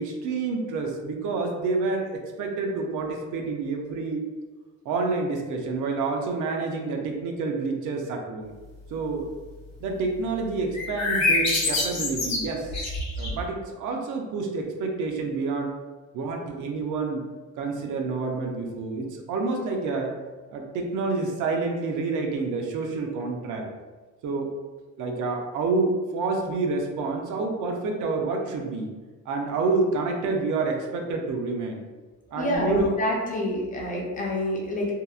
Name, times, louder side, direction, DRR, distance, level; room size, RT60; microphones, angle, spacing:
voice 1, 0.0-4.2 4.9-8.5 8.9-9.3 9.8-12.7 13.2-15.7 16.1-17.3 17.6-20.1 20.5-23.7 24.2-24.6 25.0-28.9 29.3-31.8 32.3-33.0, right 3 dB, 75° right, 2 dB, 0.5 m, -28 dB
sound 1, 10.7-13.5, left 2 dB, 60° left, 0.8 m, -25 dB
voice 2, 32.4-34.9, left 1 dB, 30° left, -2 dB, 0.4 m, -27 dB
2.7 x 2.0 x 2.3 m, 1.3 s
cardioid pair, 150°, 31 cm